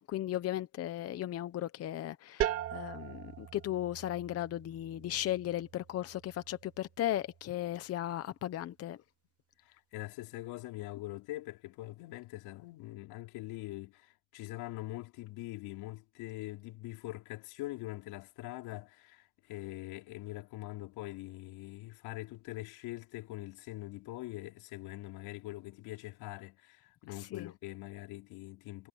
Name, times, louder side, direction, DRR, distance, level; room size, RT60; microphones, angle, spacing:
voice 1, 0.0-9.0 27.2-27.5, left 13 dB, 40° left, 0.8 m, -36 dB
sound 1, 2.4-7.9, right 11 dB, 35° right, 2.2 m, -41 dB
voice 2, 9.6-28.9, left 18 dB, 75° left, 4.4 m, -43 dB
cardioid pair, 150°, 38 cm